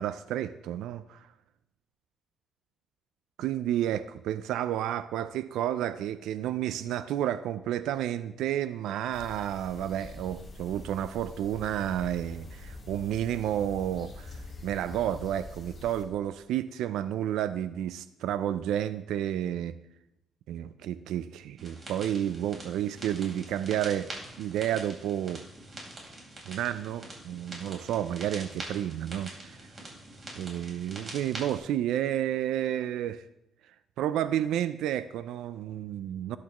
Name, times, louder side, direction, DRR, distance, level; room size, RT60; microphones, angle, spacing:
voice 1, 0.0-1.3 3.4-19.8 20.5-24.1 24.4-25.4 26.5-29.6 30.3-33.2 34.0-36.4, right 11 dB, 85° right, 13 dB, 0.4 m, -31 dB
sound 1, 9.1-16.0, left 2 dB, 35° left, 3.5 m, -45 dB
sound 2, 21.6-31.6, right 2 dB, 40° right, 3.9 m, -44 dB
12.5 x 10.5 x 3.0 m, 0.87 s
cardioid pair, 90°, 0 cm